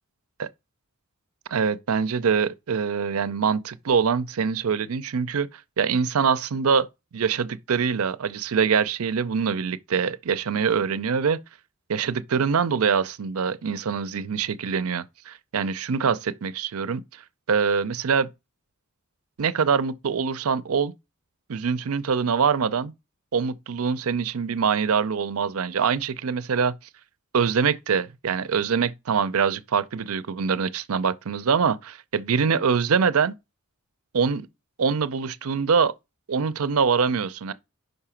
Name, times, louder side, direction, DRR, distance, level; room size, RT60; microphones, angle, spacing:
voice 1, 1.5-6.9 7.1-11.4 11.9-17.0 17.5-18.3 19.4-20.9 21.5-22.9 23.3-26.7 27.3-33.3 34.1-34.5 34.8-35.9 36.3-37.5, right 6 dB, 80° right, 0.5 m, -24 dB
5.4 x 4.9 x 5.7 m
head